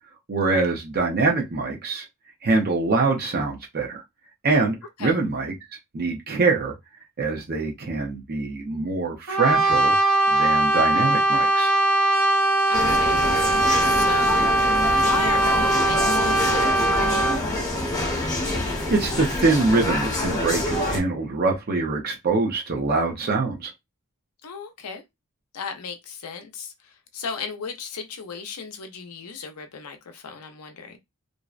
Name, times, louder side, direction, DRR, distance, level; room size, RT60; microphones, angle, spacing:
voice 1, 0.3-2.0 2.4-4.0 4.4-5.5 5.9-6.7 7.2-9.9 10.3-11.7 18.0-18.3 18.9-23.7, right 3 dB, 45° right, 0.6 m, -24 dB
Brass instrument, 9.3-17.5, right 1 dB, 85° right, 0.8 m, -20 dB
voice 2, 12.7-13.3 13.8-14.6 14.9-17.3 24.4-25.0 25.5-31.0, left 5 dB, 80° left, 0.6 m, -35 dB
sound 1, 12.7-21.0, left 1 dB, 15° left, 0.8 m, -26 dB
2.6 x 2.1 x 2.4 m
head